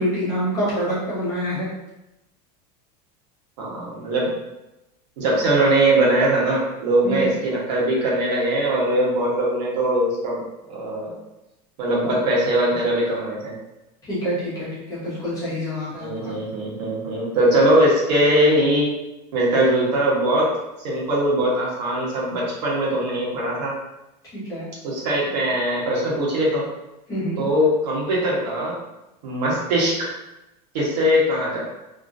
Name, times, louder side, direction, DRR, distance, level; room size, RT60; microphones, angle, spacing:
voice 1, 0.0-1.7 7.0-7.3 14.1-16.3 24.3-24.6 27.1-27.4, equal, 15° left, -10 dB, 1.1 m, -26 dB
voice 2, 3.6-4.3 5.2-10.4 10.7-11.1 11.8-13.5 16.0-18.9 19.3-20.5 20.8-23.7 24.8-26.7 27.4-28.8 29.2-30.1 30.7-31.6, right 1 dB, 85° right, -4 dB, 1.2 m, -21 dB
2.8 x 2.6 x 2.5 m, 0.95 s
supercardioid pair, 180°, 21 cm